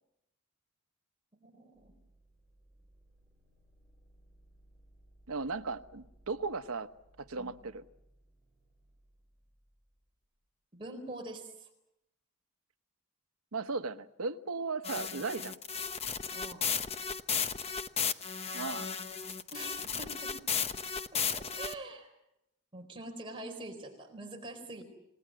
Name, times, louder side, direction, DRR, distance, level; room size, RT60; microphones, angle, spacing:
voice 1, 1.3-1.9 7.3-7.6 10.7-11.7 16.3-16.7 19.5-20.3 21.1-22.1 22.7-24.8, right 2 dB, 25° right, 2 dB, 4.2 m, -45 dB
sound 1, 1.7-10.4, right 1 dB, 10° left, 7.8 m, -64 dB
voice 2, 5.3-6.9 7.2-7.8 13.5-15.6 18.5-18.9, right 4 dB, 90° right, 9 dB, 1.1 m, -36 dB
sound 2, 14.8-21.7, left 6 dB, 30° left, 0.9 m, -34 dB
29.0 x 19.5 x 7.7 m, 0.86 s
head